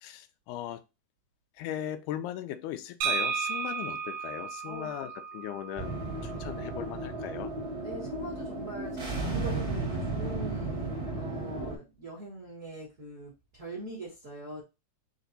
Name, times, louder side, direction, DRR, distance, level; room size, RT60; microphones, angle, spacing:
voice 1, 0.0-0.8 1.6-7.5, left 11 dB, 85° left, 2.1 m, -38 dB
sound 1, 3.0-6.8, right 6 dB, 75° right, 1.6 m, -34 dB
sound 2, 5.8-11.8, right 3 dB, 25° right, 0.7 m, -34 dB
voice 2, 7.8-14.6, right 1 dB, 40° right, 1.1 m, -43 dB
5.1 x 2.6 x 3.9 m
omnidirectional pair, 3.5 m